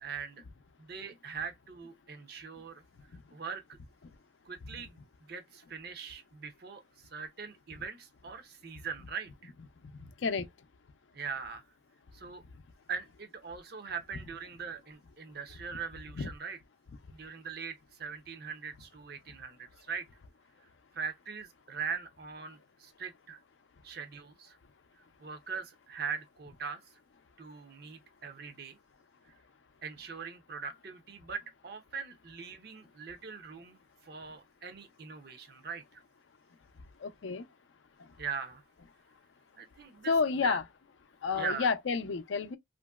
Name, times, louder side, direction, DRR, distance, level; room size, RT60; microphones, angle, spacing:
voice 1, 0.0-0.4 0.8-2.8 3.3-3.8 4.5-5.0 5.3-9.5 11.1-11.6 12.1-12.4 12.9-16.6 17.1-20.1 20.6-20.7 20.9-23.4 23.8-24.6 25.2-26.8 27.4-28.8 29.8-36.0 38.2-38.6 39.6-40.1 40.4-40.6 41.4-41.7, right 6 dB, 55° right, 0.6 m, -41 dB
voice 2, 37.0-37.4 40.1-40.6 41.2-42.6, left 5 dB, 75° left, 0.5 m, -30 dB
3.0 x 2.5 x 2.3 m
head